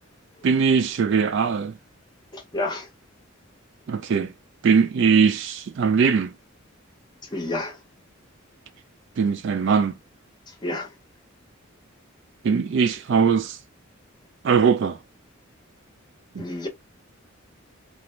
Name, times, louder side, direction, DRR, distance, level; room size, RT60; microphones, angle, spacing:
voice 1, 0.4-1.7 3.9-4.3 4.6-6.3 9.2-9.9 12.4-13.6 14.4-15.0, right 6 dB, 55° right, 0.3 m, -20 dB
voice 2, 2.3-2.9 7.3-7.8 10.5-10.9 16.4-16.7, left 2 dB, 20° left, 0.7 m, -30 dB
2.5 x 2.1 x 2.9 m
head